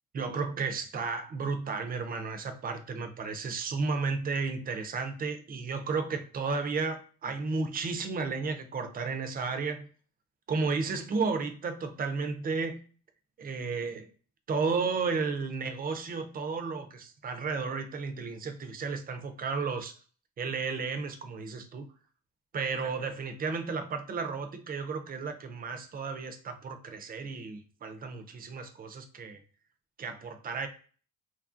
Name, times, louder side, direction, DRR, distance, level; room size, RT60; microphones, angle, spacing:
voice 1, 0.1-9.9 10.5-12.8 13.4-14.1 14.5-20.0 20.4-21.8 22.5-29.4 30.0-30.7, right 4 dB, 25° right, 7 dB, 0.4 m, -33 dB
2.9 x 2.5 x 2.4 m, 0.41 s
cardioid pair, 135°, 36 cm